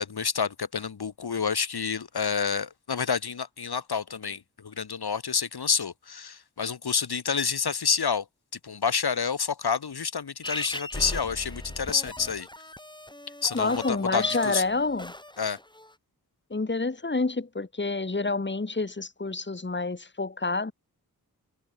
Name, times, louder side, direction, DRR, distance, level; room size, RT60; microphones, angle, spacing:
voice 1, 0.0-8.3 8.6-12.5 13.4-14.6 15.4-15.6, left 6 dB, 85° left, 1.9 m, -28 dB
sound 1, 10.4-15.9, left 1 dB, 10° left, 2.1 m, -38 dB
voice 2, 13.5-15.1 16.5-20.7, left 3 dB, 30° left, 1.8 m, -28 dB
wide cardioid pair, 55°, 37 cm